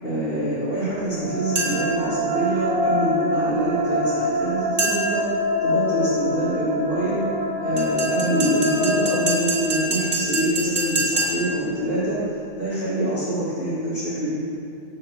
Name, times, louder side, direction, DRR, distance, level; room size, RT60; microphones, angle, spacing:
voice 1, 0.0-5.2 5.6-7.2 7.6-12.2 12.5-14.3, right 1 dB, 40° left, -14 dB, 3.6 m, -25 dB
sound 1, 1.0-10.2, left 1 dB, 70° right, 2.1 m, -25 dB
sound 2, 1.6-2.0 4.8-5.3 7.8-11.6, right 1 dB, 35° right, 2.7 m, -26 dB
13.0 x 6.5 x 7.1 m, 2.7 s
omnidirectional pair, 1.5 m